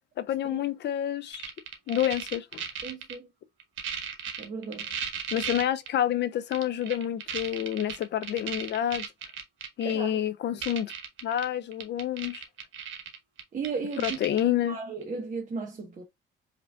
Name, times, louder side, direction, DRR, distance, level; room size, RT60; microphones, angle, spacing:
voice 1, 0.2-1.5 1.9-2.6 5.3-9.1 9.8-10.9 11.2-12.4 14.0-14.8, left 11 dB, 60° left, 0.4 m, -28 dB
sound 1, 1.3-3.1 3.6-5.9 6.5-9.9 10.3-10.4 10.6-11.4 11.7-14.4 15.0-15.1, right 8 dB, 75° right, 1.2 m, -35 dB
voice 2, 2.8-3.3 4.4-4.9 9.8-10.2 13.5-14.2 14.5-16.0, right 5 dB, 40° right, 1.2 m, -35 dB
5.0 x 2.6 x 2.3 m
cardioid pair, 90°, 20 cm